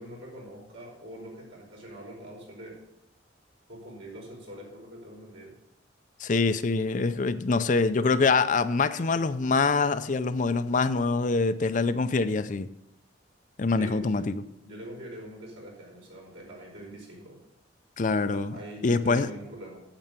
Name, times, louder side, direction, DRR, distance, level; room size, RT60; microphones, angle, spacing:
voice 1, 0.0-2.8 3.7-5.6 13.8-14.3 14.6-17.4 18.5-19.8, right 1 dB, 85° right, 4.8 m, -43 dB
voice 2, 6.2-12.7 13.6-14.4 18.0-19.3, left 4 dB, 40° left, 0.5 m, -25 dB
9.0 x 7.7 x 6.8 m
head